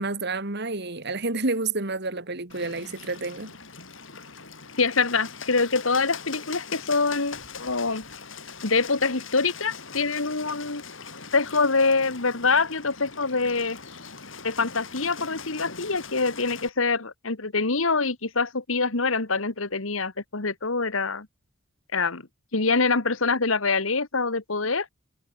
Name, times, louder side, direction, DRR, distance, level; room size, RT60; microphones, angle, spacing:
voice 1, 0.0-3.5, right 3 dB, 55° right, 2.9 m, -29 dB
Bird, 2.5-16.7, left 5 dB, 70° left, 7.9 m, -41 dB
voice 2, 4.8-8.1 8.6-10.8 11.3-13.8 14.4-21.3 21.9-22.2 22.5-24.9, left 4 dB, 85° left, 2.0 m, -25 dB
head